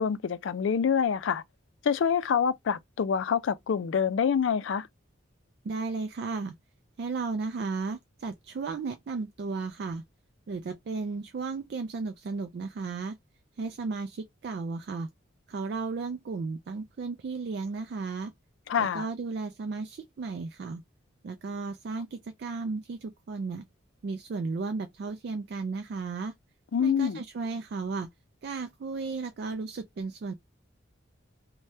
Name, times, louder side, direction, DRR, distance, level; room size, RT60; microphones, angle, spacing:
voice 1, 0.0-1.4 1.8-4.9 18.7-19.1 26.7-27.2, left 7 dB, 70° left, 0.4 m, -26 dB
voice 2, 5.6-6.5 7.0-10.0 10.5-13.2 13.6-15.1 15.5-18.3 18.8-20.8 21.2-23.6 24.0-26.3 26.8-28.1 28.4-30.3, right 4 dB, 55° right, 0.3 m, -34 dB
2.7 x 2.2 x 3.2 m
head